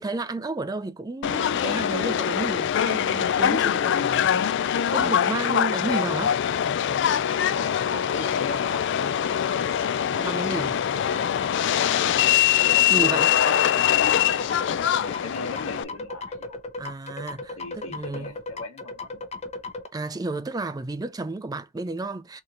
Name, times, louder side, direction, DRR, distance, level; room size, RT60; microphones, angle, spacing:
voice 1, 0.0-4.3 4.9-6.4 10.2-10.7 12.9-13.3 16.8-18.3 19.9-22.4, right 2 dB, 20° right, 0.4 m, -32 dB
Subway metro underground, 1.2-15.8, left 9 dB, 55° left, 0.3 m, -23 dB
voice 2, 7.4-9.5 10.1-12.4 12.7-13.1 13.4-13.6 14.1-16.6 17.6-19.3, left 3 dB, 80° left, 1.4 m, -39 dB
sound 1, 13.0-19.9, left 2 dB, 30° left, 0.7 m, -36 dB
4.0 x 3.0 x 2.5 m
head